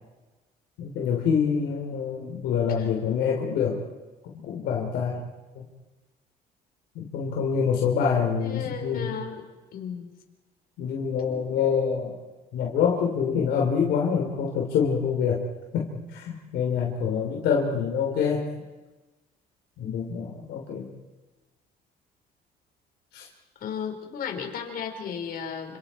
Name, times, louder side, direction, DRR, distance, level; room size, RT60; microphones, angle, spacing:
voice 1, 0.8-3.8 4.3-5.2 5.6-5.7 7.0-9.2 10.8-12.1 12.5-15.4 15.7-18.5 19.8-20.9 23.1-23.3, left 6 dB, 80° left, -1 dB, 3.6 m, -26 dB
voice 2, 8.4-9.4 9.7-10.1 23.6-25.8, left 7 dB, 60° left, 3 dB, 4.5 m, -34 dB
29.0 x 27.0 x 4.5 m, 1.2 s
cardioid pair, 110°, 17 cm